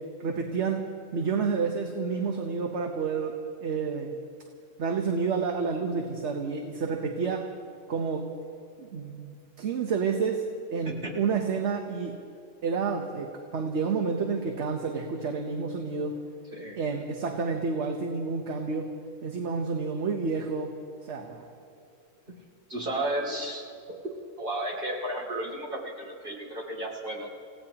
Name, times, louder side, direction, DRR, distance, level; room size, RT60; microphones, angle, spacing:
voice 1, 0.2-3.4 3.6-4.1 4.8-7.4 7.9-8.3 8.8-10.4 10.7-12.2 12.6-16.2 16.8-18.9 19.2-20.7 21.0-21.5, right 5 dB, 60° right, 3 dB, 1.3 m, -29 dB
voice 2, 22.7-23.7 24.4-27.3, right 1 dB, 40° right, -2 dB, 2.8 m, -33 dB
28.5 x 17.0 x 2.9 m, 2.6 s
omnidirectional pair, 1.4 m